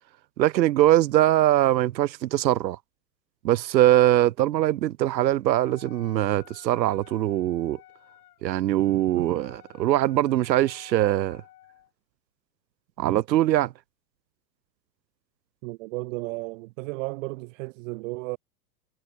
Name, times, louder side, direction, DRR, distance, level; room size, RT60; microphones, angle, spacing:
voice 1, 0.4-2.8 3.4-7.8 8.4-9.5 9.8-11.4 13.0-13.7, right 14 dB, 85° right, 0.8 m, -22 dB
Wind instrument woodwind instrument, 5.4-11.9, left 15 dB, 65° left, 8.0 m, -52 dB
voice 2, 15.6-18.4, right 25 dB, 50° right, 2.1 m, -34 dB
hypercardioid pair, 130°, 50 cm